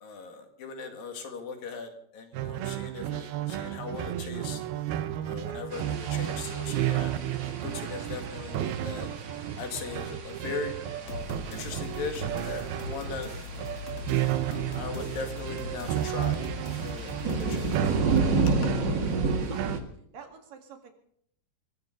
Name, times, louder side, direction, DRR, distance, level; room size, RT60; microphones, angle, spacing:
voice 1, 0.0-4.6 5.2-7.1 7.4-9.1 9.6-13.8 14.5-16.5 16.8-17.9 18.2-18.4 18.6-18.7, left 4 dB, 70° left, 5 dB, 3.7 m, -39 dB
sound 1, 2.3-19.8, right 12 dB, 85° right, 2.9 m, -33 dB
sound 2, 5.7-19.8, right 3 dB, 40° right, 1.7 m, -33 dB
sound 3, 11.1-17.9, left 5 dB, 40° left, 2.3 m, -41 dB
voice 2, 19.0-20.9, right 6 dB, 65° right, 4 dB, 3.7 m, -48 dB
24.0 x 15.0 x 3.9 m, 0.67 s
omnidirectional pair, 4.3 m